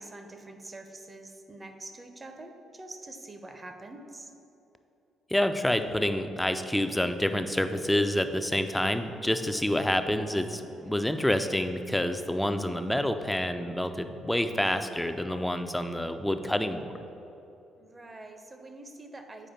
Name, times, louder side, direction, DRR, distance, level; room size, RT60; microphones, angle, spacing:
voice 1, 0.0-4.3 10.6-11.2 17.8-19.5, right 2 dB, 25° right, 6 dB, 0.7 m, -46 dB
voice 2, 5.3-16.9, left 1 dB, 5° left, 8 dB, 0.5 m, -28 dB
7.3 x 4.8 x 4.3 m, 2.9 s
hypercardioid pair, 45°, 0 cm